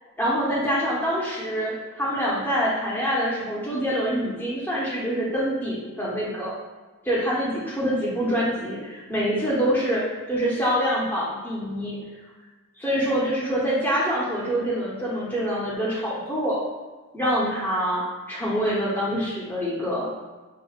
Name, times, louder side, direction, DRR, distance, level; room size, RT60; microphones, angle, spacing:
voice 1, 0.2-6.5 7.0-10.0 10.3-12.0 12.8-16.6 17.1-20.0, equal, 10° left, -7 dB, 0.9 m, -25 dB
5.9 x 2.5 x 2.4 m, 1.3 s
head